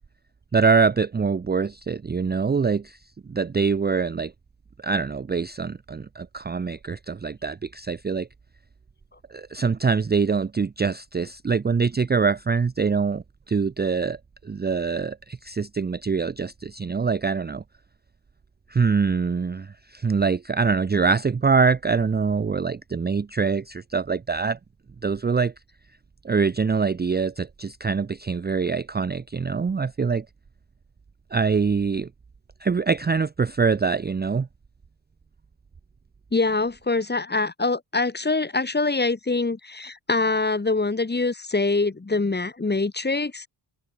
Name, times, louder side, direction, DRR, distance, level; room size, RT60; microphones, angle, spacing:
voice 1, 0.5-3.0 3.3-4.3 4.8-8.3 9.3-14.2 14.4-17.6 18.7-24.6 25.0-25.5 26.2-30.3 31.3-32.1 32.6-34.5, right 5 dB, 20° right, 0.6 m, -24 dB
voice 2, 36.3-43.5, left 3 dB, 20° left, 3.7 m, -24 dB
wide cardioid pair, 140°, 44 cm